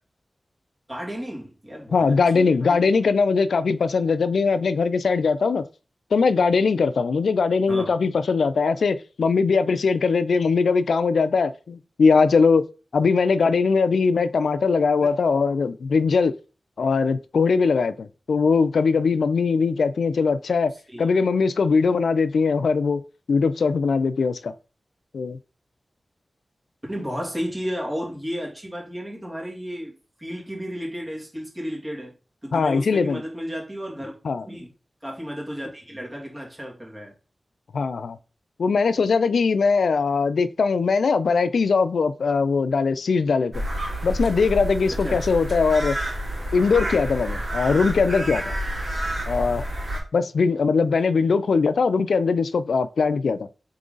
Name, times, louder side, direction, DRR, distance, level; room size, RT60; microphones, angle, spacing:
voice 1, 0.9-3.1 7.7-7.9 15.0-15.1 20.9-21.2 26.9-32.1 32.4-34.1 34.4-34.7 35.0-37.1 45.0-45.3, equal, 25° right, 2.2 m, -33 dB
voice 2, 1.9-5.6 6.1-12.6 12.9-16.3 16.8-20.7 21.0-23.0 23.3-24.5 25.1-25.4 32.5-33.2 34.2-34.4 37.7-38.2 38.6-43.5 44.0-46.0 46.5-48.5 49.3-49.6 50.1-53.5, left 4 dB, 90° left, 0.3 m, -21 dB
Suburb Ambience crows and other birds, 43.5-50.0, equal, 55° right, 2.7 m, -29 dB
3.7 x 3.7 x 3.9 m
cardioid pair, 50°, 0 cm